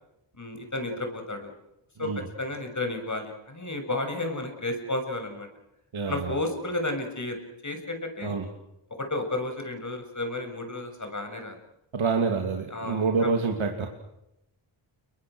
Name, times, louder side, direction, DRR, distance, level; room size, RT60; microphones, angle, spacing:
voice 1, 0.3-1.5 2.0-2.1 2.4-5.5 6.1-7.4 7.6-8.4 9.0-11.6 12.7-13.3, left 2 dB, 35° left, 6 dB, 6.9 m, -32 dB
voice 2, 5.9-6.3 8.2-8.5 11.9-13.9, right 4 dB, 75° right, 3 dB, 2.8 m, -27 dB
30.0 x 23.0 x 6.3 m, 0.86 s
cardioid pair, 65°, 48 cm